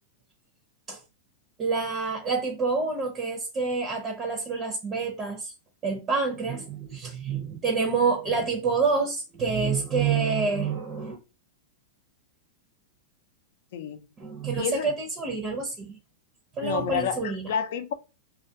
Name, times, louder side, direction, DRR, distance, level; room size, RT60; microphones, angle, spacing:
voice 1, 1.6-5.5 5.8-11.2 14.2-15.9 16.6-17.5, right 4 dB, 30° right, 0.6 m, -27 dB
voice 2, 13.7-14.1 14.5-14.9 16.6-17.9, left 8 dB, 70° left, 0.4 m, -29 dB
2.3 x 2.2 x 2.6 m
hypercardioid pair, 130°, 0 cm